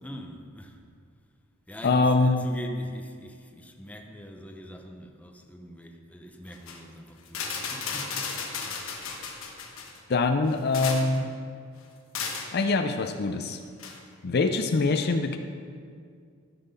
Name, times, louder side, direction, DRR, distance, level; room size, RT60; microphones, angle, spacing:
voice 1, 0.0-0.8 1.7-8.3, equal, 5° left, 3 dB, 0.8 m, -43 dB
voice 2, 1.8-2.5 10.1-11.3 12.5-13.6 14.2-15.4, left 3 dB, 50° left, 7 dB, 0.5 m, -24 dB
sound 1, 6.5-6.8 7.3-10.0 10.5-11.2 12.1-12.5 13.8-14.0, left 5 dB, 70° left, 1.2 m, -34 dB
13.5 x 6.0 x 5.5 m, 2.2 s
head